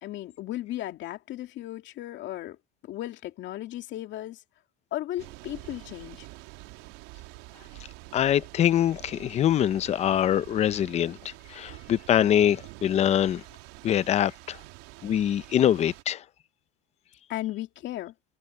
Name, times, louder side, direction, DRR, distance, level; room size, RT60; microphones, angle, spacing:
voice 1, 0.0-2.6 2.8-4.4 4.9-6.3 17.3-18.1, left 14 dB, 40° left, 2.6 m, -35 dB
Thunder / Rain, 5.2-16.0, right 22 dB, 55° right, 2.2 m, -47 dB
voice 2, 8.1-11.2 11.5-13.4 13.8-14.6 15.0-16.2, left 10 dB, 25° left, 0.6 m, -24 dB
supercardioid pair, 145°, 29 cm